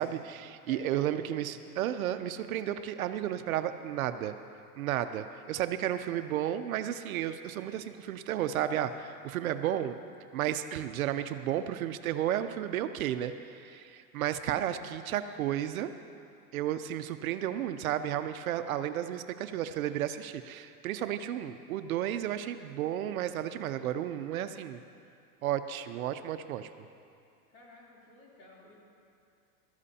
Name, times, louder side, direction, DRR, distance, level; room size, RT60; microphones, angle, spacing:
voice 1, 0.0-4.3 4.8-10.0 10.3-15.9 16.5-24.8 25.4-26.7, right 11 dB, 65° right, 10 dB, 0.6 m, -33 dB
voice 2, 0.7-1.4 27.5-28.7, left 1 dB, 45° left, -4 dB, 3.3 m, -50 dB
18.0 x 13.5 x 2.8 m, 2.5 s
supercardioid pair, 165°, 47 cm